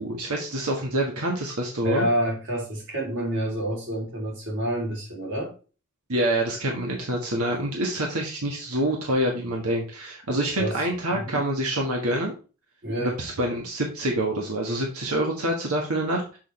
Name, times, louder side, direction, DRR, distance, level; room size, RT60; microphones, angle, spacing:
voice 1, 0.0-2.1 6.1-12.3 13.0-16.4, right 1 dB, 85° right, 1 dB, 1.5 m, -26 dB
voice 2, 1.8-5.5 7.4-7.6 10.6-10.8 11.1-11.4 12.8-13.1, right 1 dB, 55° right, 0 dB, 3.1 m, -28 dB
6.4 x 6.4 x 3.2 m, 0.34 s
head